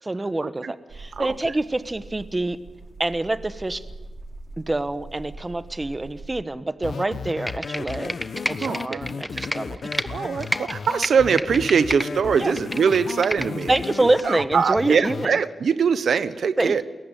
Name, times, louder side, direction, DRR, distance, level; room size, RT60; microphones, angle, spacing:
voice 1, 0.0-2.6 3.0-3.8 4.6-8.1 8.5-9.8 12.4-12.5 13.7-15.4 16.6-16.8, right 2 dB, 20° right, 12 dB, 1.2 m, -26 dB
sound 1, 0.9-6.4, right 3 dB, 65° right, 3.5 m, -42 dB
sound 2, 6.8-15.3, left 5 dB, 70° left, 1.0 m, -34 dB
Computer keyboard, 7.3-10.1 10.4-12.1 12.4-13.8 14.2-14.3, equal, ahead, 1.2 m, -30 dB
voice 2, 8.6-9.0 10.1-13.7 14.2-16.8, right 6 dB, 90° right, 13 dB, 1.1 m, -22 dB
29.0 x 22.0 x 9.1 m, 1.1 s
wide cardioid pair, 120°, 0 cm